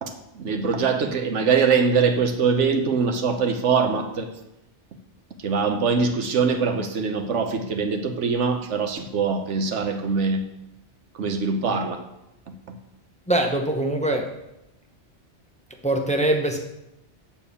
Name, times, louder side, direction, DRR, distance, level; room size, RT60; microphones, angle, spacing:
voice 1, 0.0-4.3 5.4-10.4 11.1-12.0 12.5-12.8, right 5 dB, 90° right, 1.3 m, -23 dB
voice 2, 13.3-14.3 15.8-16.6, right 1 dB, 5° left, 0.8 m, -22 dB
8.8 x 4.5 x 6.9 m
omnidirectional pair, 1.2 m